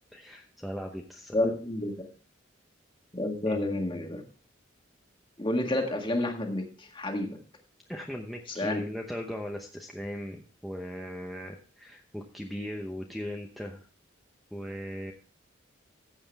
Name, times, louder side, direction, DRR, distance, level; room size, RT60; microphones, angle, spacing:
voice 1, 0.1-1.4 3.4-3.8 7.9-13.8 14.5-15.1, equal, ahead, 1 dB, 0.9 m, -38 dB
voice 2, 1.3-1.9 3.1-4.2 5.4-7.4 8.5-8.8, left 1 dB, 25° left, 3 dB, 1.7 m, -29 dB
14.5 x 8.0 x 3.5 m, 0.40 s
head